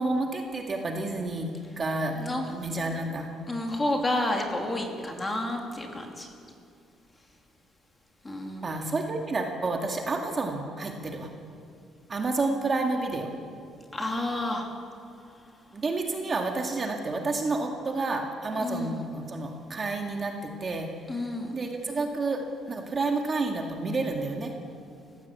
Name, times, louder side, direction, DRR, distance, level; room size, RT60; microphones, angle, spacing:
voice 1, 0.0-2.1 2.5-3.3 8.6-11.3 12.1-13.3 15.7-20.9 21.5-24.5, right 3 dB, 25° right, 2 dB, 2.0 m, -30 dB
voice 2, 3.5-6.3 8.2-8.6 13.9-14.7 18.6-19.0 21.1-21.5, left 1 dB, 15° left, 2 dB, 2.7 m, -30 dB
30.0 x 16.0 x 8.4 m, 2.3 s
cardioid pair, 180°, 0 cm